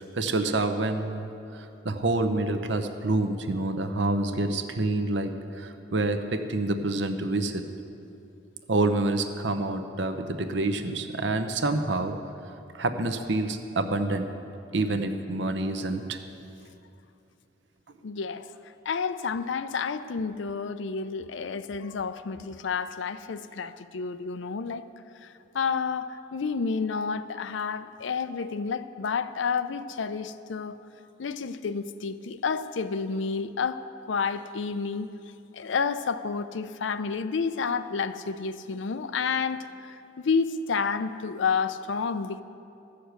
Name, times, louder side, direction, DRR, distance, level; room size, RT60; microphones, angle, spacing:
voice 1, 0.1-7.6 8.7-12.1 12.7-14.3 14.7-16.2, right 2 dB, 70° right, 0.8 m, -27 dB
voice 2, 18.0-18.5 18.9-24.9 25.2-30.8 31.2-33.8 34.1-35.1 35.5-42.4, left 5 dB, 75° left, 0.5 m, -30 dB
13.5 x 6.6 x 8.0 m
head